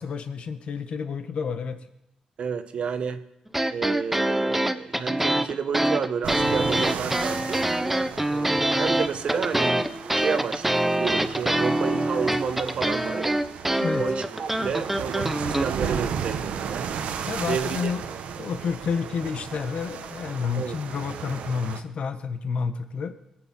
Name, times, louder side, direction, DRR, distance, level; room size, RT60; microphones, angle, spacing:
voice 1, 0.0-1.8 13.8-14.0 17.2-18.1 18.4-23.2, left 5 dB, 60° left, 9 dB, 1.3 m, -30 dB
voice 2, 2.4-3.2 3.7-7.6 8.3-9.8 10.1-13.4 14.0-16.9 17.5-17.9 20.6-20.8, right 6 dB, 60° right, 10 dB, 1.1 m, -30 dB
sound 1, 3.5-15.6, right 1 dB, 10° right, 0.8 m, -25 dB
sound 2, 6.2-21.8, right 7 dB, 85° right, 1.0 m, -35 dB
22.0 x 8.0 x 5.5 m, 0.84 s
cardioid pair, 105°, 2 cm